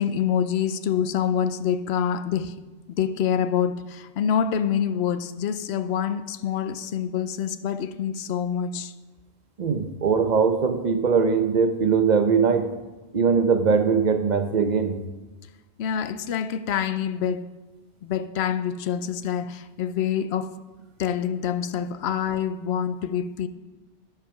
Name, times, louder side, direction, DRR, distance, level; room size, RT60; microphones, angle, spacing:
voice 1, 0.0-2.5 3.0-8.9 15.8-17.5 18.0-20.5 21.0-23.5, left 8 dB, 70° left, 0.8 m, -26 dB
voice 2, 9.6-12.7 13.1-15.0, right 5 dB, 45° right, 0.8 m, -21 dB
12.5 x 4.8 x 5.8 m
omnidirectional pair, 1.1 m